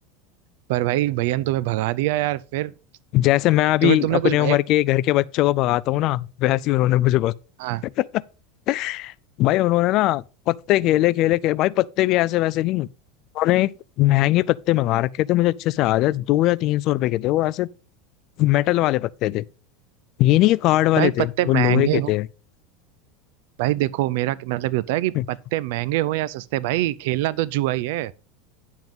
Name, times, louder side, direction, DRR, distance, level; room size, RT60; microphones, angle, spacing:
voice 1, 0.7-2.7 3.8-4.6 7.6-7.8 21.0-22.1 23.6-28.1, right 16 dB, 65° right, 0.5 m, -24 dB
voice 2, 3.1-7.3 8.0-8.1 8.7-9.1 9.4-12.9 13.3-13.7 14.0-17.7 18.4-19.4 20.2-22.3 25.1-25.2, left 16 dB, 40° left, 0.4 m, -20 dB
9.4 x 7.2 x 3.7 m
supercardioid pair, 155°, 0 cm